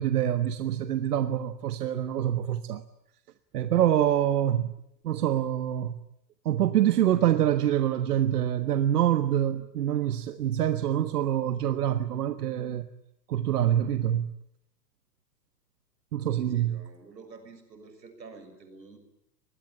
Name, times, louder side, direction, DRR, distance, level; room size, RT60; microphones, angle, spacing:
voice 1, 0.0-2.8 3.5-4.7 5.0-6.0 6.4-12.9 13.3-14.3 16.1-16.7, right 11 dB, 65° right, 1.4 m, -25 dB
voice 2, 16.3-19.0, right 4 dB, 85° right, 6.7 m, -49 dB
25.0 x 21.0 x 9.9 m
hypercardioid pair, 120°, 50 cm